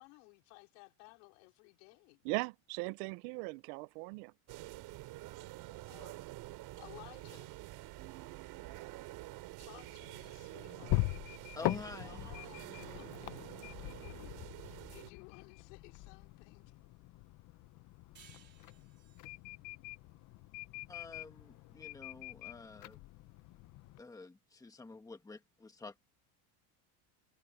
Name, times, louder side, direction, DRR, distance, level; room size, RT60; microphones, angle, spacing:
voice 1, 0.0-2.2 5.9-6.1 6.8-7.5 9.6-11.1 12.0-13.1 14.6-16.7, left 28 dB, 85° left, 4.6 m, -57 dB
voice 2, 2.2-4.3, right 27 dB, 70° right, 0.6 m, -39 dB
sound 1, 4.5-15.1, right 18 dB, 50° right, 3.6 m, -48 dB
sound 2, 9.6-24.0, left 19 dB, 40° left, 0.7 m, -42 dB
voice 3, 11.5-12.3 20.9-23.0 24.0-26.0, left 3 dB, 5° left, 1.5 m, -49 dB
sound 3, 18.1-21.3, right 7 dB, 20° right, 4.3 m, -64 dB
cardioid pair, 170°, 47 cm